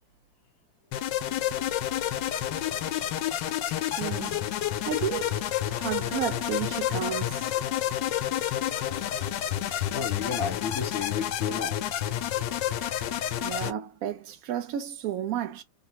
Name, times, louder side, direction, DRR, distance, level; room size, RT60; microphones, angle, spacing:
sound 1, 0.9-13.7, left 11 dB, 80° left, 1.3 m, -29 dB
voice 1, 3.9-4.4 4.9-5.4 5.7-7.4 13.4-15.6, right 9 dB, 70° right, 0.8 m, -32 dB
voice 2, 9.9-11.8, left 6 dB, 55° left, 1.4 m, -33 dB
3.6 x 2.0 x 2.8 m
omnidirectional pair, 2.0 m